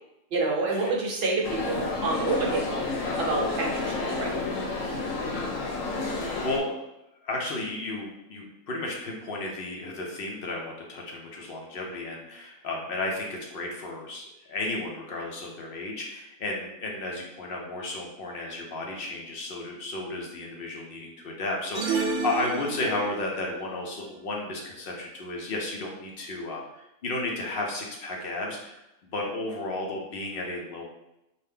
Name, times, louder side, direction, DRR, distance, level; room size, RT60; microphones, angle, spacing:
voice 1, 0.3-2.8 3.2-4.4, right 3 dB, 55° right, -1 dB, 0.8 m, -28 dB
sound 1, 1.4-6.6, left 3 dB, 85° left, 1.0 m, -30 dB
voice 2, 6.2-6.8 7.2-30.8, left 2 dB, 55° left, -1 dB, 0.7 m, -33 dB
sound 2, 21.7-23.3, right 4 dB, 80° right, 1.0 m, -30 dB
2.7 x 2.2 x 3.3 m, 0.88 s
omnidirectional pair, 1.3 m